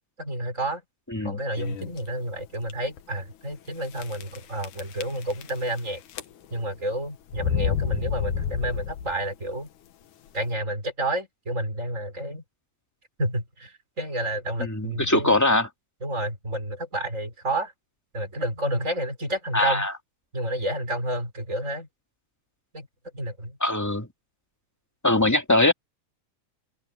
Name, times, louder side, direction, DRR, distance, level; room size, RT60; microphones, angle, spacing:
voice 1, 0.2-0.8 1.2-6.0 6.5-9.7 10.3-12.4 13.2-15.4 16.0-17.7 18.1-19.9 20.3-21.9 22.7-22.9 23.1-23.6, right 1 dB, 25° right, 6.5 m, -30 dB
sound 1, 1.6-2.0 2.6-2.7 3.0-3.1 4.0-4.4 4.6-5.8 6.1-6.6 7.3-9.3, left 7 dB, 80° left, 2.7 m, -29 dB
voice 2, 14.6-15.7 19.5-19.9 23.6-24.1 25.0-25.7, left 2 dB, 5° left, 2.0 m, -22 dB
omnidirectional pair, 3.5 m